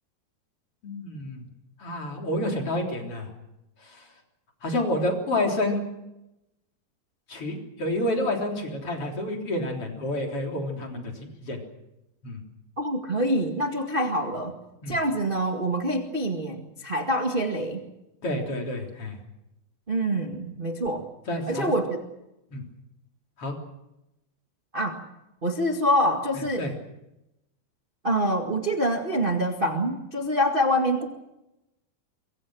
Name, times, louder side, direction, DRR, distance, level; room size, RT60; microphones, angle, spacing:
voice 1, 0.8-1.5 1.8-3.3 3.8-4.0 4.6-5.9 7.3-11.1 11.4-11.6 12.2-12.4 14.8-15.0 18.2-19.2 21.3-21.7 22.5-22.6 23.4-23.6 26.3-26.7, left 1 dB, 35° left, 1 dB, 4.3 m, -29 dB
voice 2, 12.8-14.5 14.9-17.8 19.9-21.1 21.5-22.0 24.7-25.0 25.4-26.6 28.0-31.0, equal, 30° right, 3 dB, 0.9 m, -25 dB
25.0 x 24.5 x 6.4 m, 0.92 s
omnidirectional pair, 4.5 m